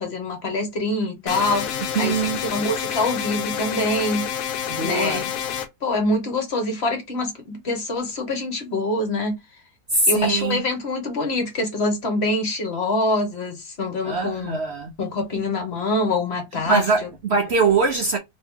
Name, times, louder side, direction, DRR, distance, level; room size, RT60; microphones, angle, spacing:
voice 1, 0.0-1.7 2.0-5.3 5.8-9.4 10.1-14.6 15.0-17.1, left 2 dB, 45° left, 1.1 m, -25 dB
sound 1, 1.3-5.7, left 8 dB, 65° left, 1.0 m, -28 dB
voice 2, 2.0-2.4 4.7-5.2 9.9-10.6 14.0-14.9 16.7-18.2, right 4 dB, 60° right, 0.7 m, -22 dB
3.1 x 2.9 x 3.5 m
omnidirectional pair, 1.7 m